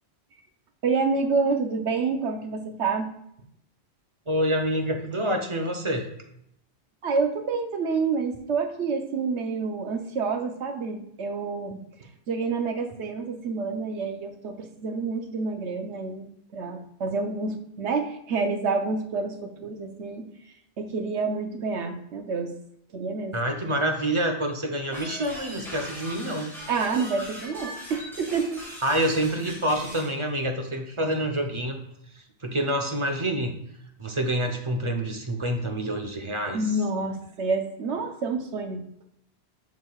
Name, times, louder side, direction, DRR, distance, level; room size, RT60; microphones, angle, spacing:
voice 1, 0.8-3.1 7.0-11.8 12.3-20.2 20.8-22.5 22.9-23.3 26.7-28.6 36.5-38.8, right 4 dB, 80° right, 5 dB, 1.1 m, -28 dB
voice 2, 4.3-6.1 23.3-26.5 28.8-31.8 32.4-33.6 34.0-36.6, right 1 dB, 30° right, 4 dB, 0.8 m, -27 dB
sound 1, 24.9-30.1, equal, ahead, 2.0 m, -40 dB
7.2 x 6.1 x 2.4 m, 0.75 s
omnidirectional pair, 1.1 m